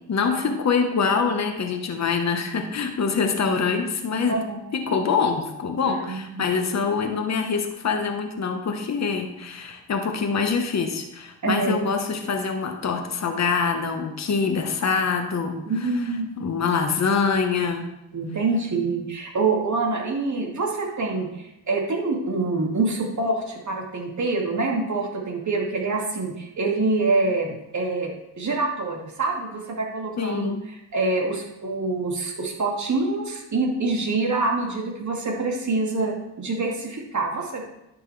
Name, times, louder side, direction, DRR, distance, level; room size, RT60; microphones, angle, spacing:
voice 1, 0.1-4.4 4.7-15.6 16.4-17.9 30.2-30.6, left 5 dB, 40° left, 5 dB, 1.3 m, -24 dB
voice 2, 5.9-6.4 11.4-11.8 15.7-16.3 18.1-30.5 30.9-37.7, right 3 dB, 45° right, 0 dB, 2.4 m, -26 dB
10.5 x 6.0 x 3.3 m, 0.88 s
supercardioid pair, 60°, 42 cm